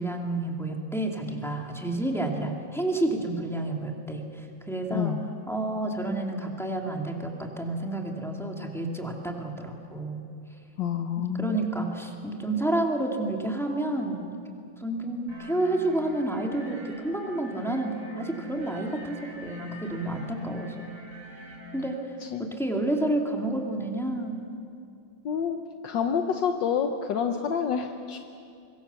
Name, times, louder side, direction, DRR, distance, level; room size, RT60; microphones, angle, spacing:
voice 1, 0.0-5.1 5.5-10.2 11.2-14.4 14.8-20.9 21.7-22.0 22.4-24.5, right 2 dB, ahead, 1 dB, 2.3 m, -30 dB
voice 2, 4.9-5.2 10.8-11.6 22.2-22.5 25.2-28.2, left 7 dB, 75° left, 5 dB, 1.6 m, -28 dB
sound 1, 15.3-22.0, right 1 dB, 60° right, 4.4 m, -44 dB
25.5 x 22.0 x 7.0 m, 2.5 s
omnidirectional pair, 2.0 m